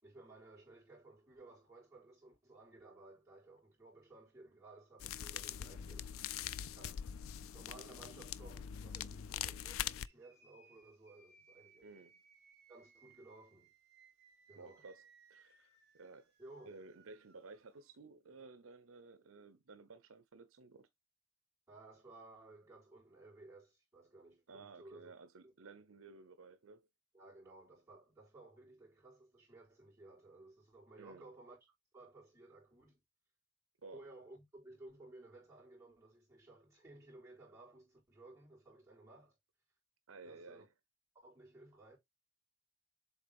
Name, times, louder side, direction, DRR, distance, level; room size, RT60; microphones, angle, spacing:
voice 1, 0.0-7.0 7.5-11.9 12.7-13.7 14.5-14.8 16.4-16.8 21.7-25.1 25.4-25.5 27.1-31.6 31.9-33.0 33.9-39.3 40.2-40.7 41.1-42.0, right 2 dB, 15° right, 3.9 m, -58 dB
sound 1, 5.0-10.1, left 10 dB, 70° left, 0.4 m, -43 dB
sound 2, 10.0-17.9, right 5 dB, 55° right, 1.7 m, -67 dB
voice 2, 11.8-12.2 14.6-16.3 16.7-20.9 24.5-26.9 31.0-31.3 33.8-34.0 40.1-40.7, right 3 dB, 70° right, 0.7 m, -55 dB
7.2 x 3.8 x 3.5 m
head